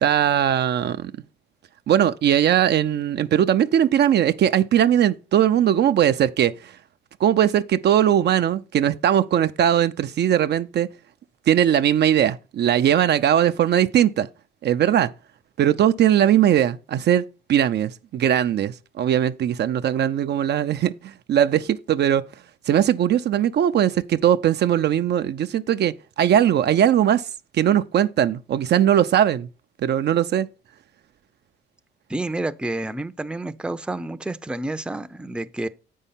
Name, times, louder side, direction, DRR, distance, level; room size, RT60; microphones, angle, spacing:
voice 1, 0.0-1.1 1.9-6.5 7.2-10.9 11.5-14.3 14.6-15.1 15.6-17.2 17.5-22.3 22.7-27.2 27.5-29.5 29.8-30.5, right 10 dB, 60° right, 0.5 m, -19 dB
voice 2, 32.1-35.7, right 2 dB, 5° right, 0.5 m, -29 dB
8.2 x 5.5 x 5.6 m
cardioid pair, 90°, 20 cm